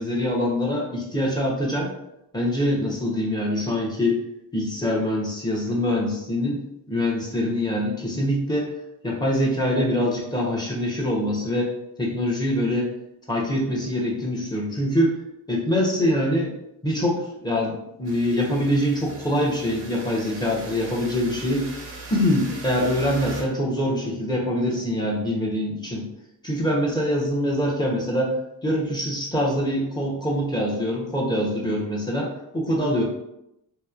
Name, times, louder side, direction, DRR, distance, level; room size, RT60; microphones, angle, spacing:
voice 1, 0.0-1.9 2.3-4.2 4.5-6.6 6.9-8.7 9.0-11.7 12.0-12.9 13.3-15.2 15.5-16.5 16.8-21.7 22.1-26.1 26.4-28.3 28.6-33.0, equal, 10° left, -4 dB, 0.8 m, -24 dB
sound 1, 18.0-23.4, right 2 dB, 85° right, 0.8 m, -40 dB
2.9 x 2.2 x 2.4 m, 0.84 s
cardioid pair, 80°, 42 cm